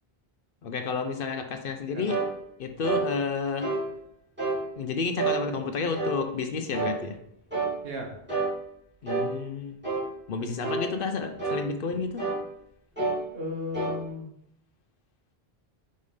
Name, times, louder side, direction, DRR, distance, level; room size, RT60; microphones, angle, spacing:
voice 1, 0.6-2.2 2.6-3.7 4.8-7.2 9.0-9.8 10.3-12.3, left 4 dB, 60° left, 6 dB, 0.8 m, -31 dB
sound 1, 2.1-2.3 2.8-3.1 3.6-3.8 4.4-4.6 5.2-5.4 5.9-6.2 6.7-7.0 7.5-7.7 8.3-8.5 9.1-9.3 9.8-10.1 10.6-10.9 11.4-11.6 12.2-12.4 13.0-13.2 13.7-14.0, right 3 dB, 10° right, 2.5 m, -28 dB
voice 2, 13.3-14.3, left 2 dB, 65° right, 1 dB, 1.3 m, -35 dB
5.3 x 3.7 x 4.9 m, 0.76 s
omnidirectional pair, 1.1 m